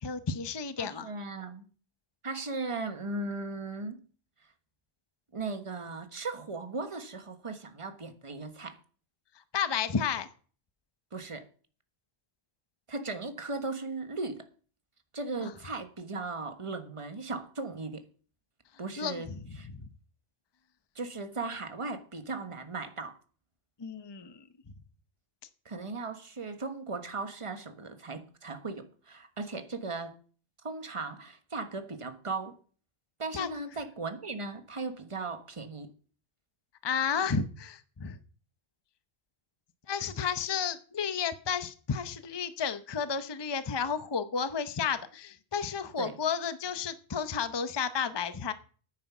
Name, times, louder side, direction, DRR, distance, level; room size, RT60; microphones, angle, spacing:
voice 1, 0.0-1.1 9.5-10.3 15.4-15.5 19.0-19.4 23.8-24.4 33.3-33.5 36.8-38.2 39.9-48.5, left 6 dB, 25° left, 12 dB, 0.7 m, -32 dB
voice 2, 0.8-1.7 2.2-4.0 5.3-8.8 11.1-11.5 12.9-14.5 15.1-18.0 18.8-19.3 19.6-19.7 20.9-23.2 25.6-30.1 30.6-32.6 33.2-35.9 40.0-40.1 46.0-46.1, right 3 dB, 30° right, 8 dB, 1.3 m, -37 dB
9.7 x 9.4 x 6.0 m, 0.41 s
omnidirectional pair, 1.1 m